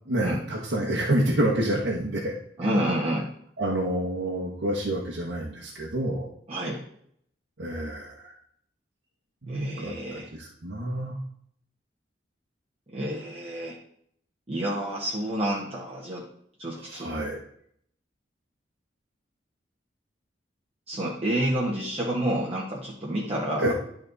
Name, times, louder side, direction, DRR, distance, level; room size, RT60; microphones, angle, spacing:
voice 1, 0.1-2.3 3.6-6.3 7.6-8.3 9.4-11.1 16.8-17.4 23.6-23.7, right 1 dB, 80° right, -4 dB, 1.4 m, -28 dB
voice 2, 2.6-3.3 6.5-6.8 9.5-10.3 12.9-13.8 14.5-16.2 16.6-17.1 20.9-23.7, right 1 dB, 35° right, -6 dB, 1.5 m, -29 dB
11.0 x 4.4 x 4.1 m, 0.67 s
head